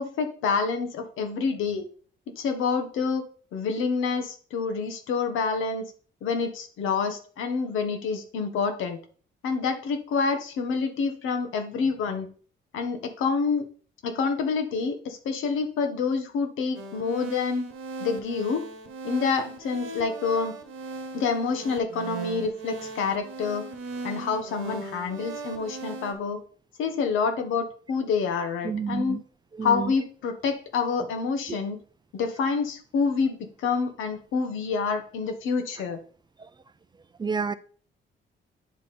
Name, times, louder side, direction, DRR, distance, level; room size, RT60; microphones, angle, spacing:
voice 1, 0.0-1.9 2.4-3.2 3.5-5.8 6.2-9.0 9.4-12.3 12.7-13.6 14.0-17.6 18.0-18.6 19.0-20.5 21.1-23.7 24.0-26.4 26.8-29.2 29.6-31.8 32.1-36.0, left 5 dB, 85° left, 1.2 m, -27 dB
sound 1, 16.7-26.1, right 3 dB, 90° right, 1.1 m, -38 dB
voice 2, 28.6-29.2 29.5-29.9 36.4-36.5 37.2-37.5, right 5 dB, 20° right, 0.4 m, -29 dB
8.8 x 3.5 x 4.2 m
cardioid pair, 90°, 20 cm